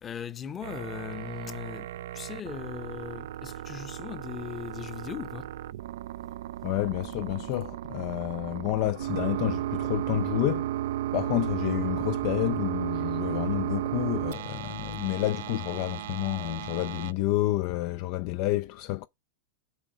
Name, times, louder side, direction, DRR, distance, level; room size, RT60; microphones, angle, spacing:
voice 1, 0.0-5.5, left 9 dB, 25° left, 0.9 m, -39 dB
sound 1, 0.6-17.1, right 13 dB, 65° right, 0.3 m, -34 dB
voice 2, 6.6-10.7 11.1-19.1, left 16 dB, 50° left, 0.4 m, -29 dB
7.2 x 4.5 x 5.0 m
hypercardioid pair, 95°, 0 cm